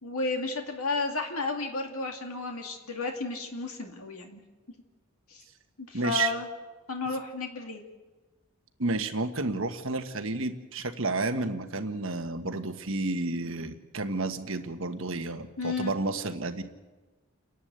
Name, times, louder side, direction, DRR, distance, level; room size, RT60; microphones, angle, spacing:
voice 1, 0.0-4.4 5.3-5.4 5.8-6.5 6.9-7.8 15.6-15.9, left 3 dB, 85° left, 3 dB, 2.4 m, -32 dB
voice 2, 5.9-6.3 8.8-16.6, right 3 dB, 65° right, 7 dB, 1.5 m, -31 dB
29.0 x 11.0 x 8.1 m, 1.2 s
head